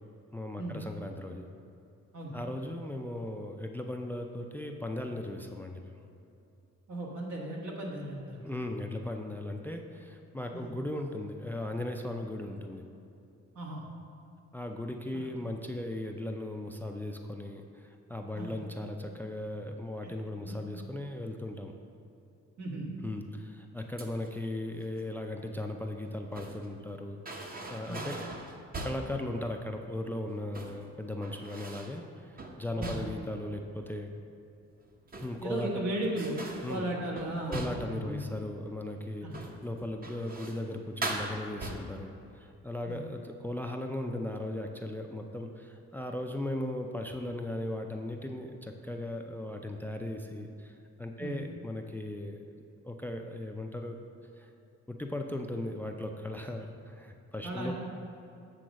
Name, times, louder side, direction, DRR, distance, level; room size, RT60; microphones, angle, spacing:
voice 1, 0.3-1.5 2.3-5.9 8.4-12.8 14.5-21.7 23.0-28.2 28.8-34.1 35.2-35.7 36.6-36.8 37.5-52.4 52.8-54.0 54.4-54.5 54.9-57.7, left 1 dB, 5° left, 4 dB, 0.4 m, -37 dB
voice 2, 6.9-8.7 10.5-10.7 13.5-13.8 15.1-15.3 18.3-18.5 20.5-20.6 22.6-22.9 27.9-28.0 32.8-33.0 35.4-36.4 36.7-38.2 39.2-39.4 42.9-43.0 51.2-51.4 57.4-57.7, right 1 dB, 70° right, -3 dB, 1.7 m, -36 dB
sound 1, 24.0-24.4 26.0-26.7 27.2-29.2 30.3-30.8 31.2-32.0 32.4-33.3 34.9-35.6 36.2-38.0 39.3-39.6 40.0-40.7 41.0-42.1, right 2 dB, 30° right, 0.9 m, -40 dB
7.8 x 3.8 x 6.3 m, 2.7 s
cardioid pair, 90°, 30 cm